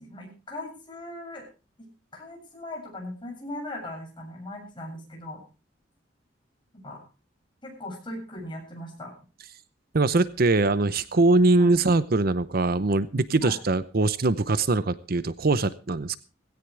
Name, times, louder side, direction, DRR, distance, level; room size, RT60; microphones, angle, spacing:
voice 1, 0.0-1.5 1.8-5.4 6.8-7.0 7.6-9.1 11.6-11.7 13.4-13.5, left 1 dB, 25° left, 0 dB, 7.5 m, -39 dB
voice 2, 9.9-16.2, right 3 dB, 55° right, 15 dB, 0.8 m, -22 dB
18.0 x 16.5 x 3.4 m, 0.33 s
head